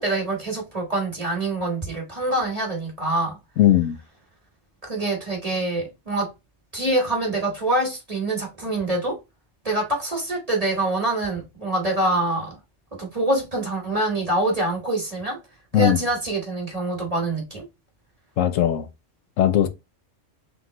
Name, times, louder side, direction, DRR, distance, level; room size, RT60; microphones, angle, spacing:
voice 1, 0.0-3.4 4.8-6.3 6.7-9.2 9.6-12.6 13.0-15.4 15.7-17.6, right 2 dB, 30° right, 1.7 m, -25 dB
voice 2, 3.6-4.0 15.7-16.0 18.4-18.9 19.4-19.7, left 11 dB, 80° left, 1.0 m, -18 dB
3.7 x 3.5 x 3.0 m
omnidirectional pair, 1.3 m